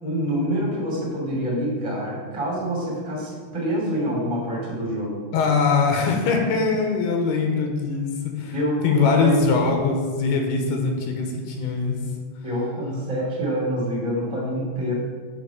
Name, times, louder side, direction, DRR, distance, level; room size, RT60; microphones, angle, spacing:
voice 1, 0.0-5.2 8.5-9.4 12.4-14.9, equal, 10° right, -4 dB, 2.1 m, -26 dB
voice 2, 5.3-8.5 8.8-12.0, left 4 dB, 85° left, 2 dB, 3.1 m, -22 dB
8.2 x 5.9 x 5.8 m, 1.5 s
omnidirectional pair, 4.6 m